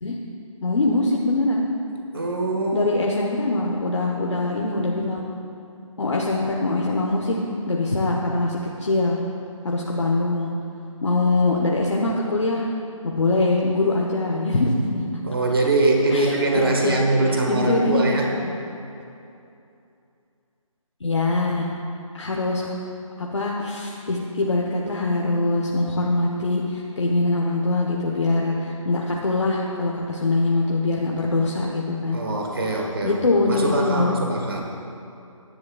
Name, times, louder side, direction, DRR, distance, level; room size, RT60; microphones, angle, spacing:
voice 1, 0.6-1.6 2.7-5.2 6.0-7.4 7.7-9.2 9.6-10.5 11.0-12.7 13.0-15.1 16.1-18.5 21.0-21.7 22.1-22.8 23.2-32.2 33.0-34.1, left 2 dB, 55° left, -2 dB, 1.1 m, -23 dB
voice 2, 2.1-2.9 15.2-18.3 32.1-34.6, right 2 dB, 45° right, 0 dB, 1.3 m, -22 dB
20.0 x 10.5 x 2.4 m, 2.7 s
figure-of-eight pair, 180°, 18 cm